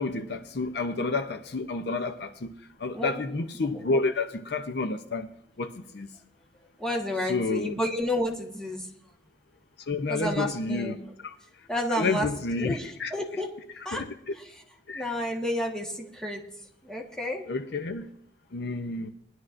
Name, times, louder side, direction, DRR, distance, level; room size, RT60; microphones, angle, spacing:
voice 1, 0.0-2.5 2.8-5.3 5.6-6.1 7.3-7.8 9.9-11.3 11.9-13.1 13.9-14.3 14.9-15.1 17.5-18.1 18.5-19.1, left 3 dB, 60° left, 7 dB, 0.6 m, -30 dB
voice 2, 6.8-8.9 10.1-11.0 11.7-12.3 12.6-13.5 13.8-14.0 14.9-16.4 16.8-17.4, left 1 dB, 5° left, -1 dB, 1.3 m, -30 dB
20.5 x 11.0 x 2.5 m, 0.72 s
head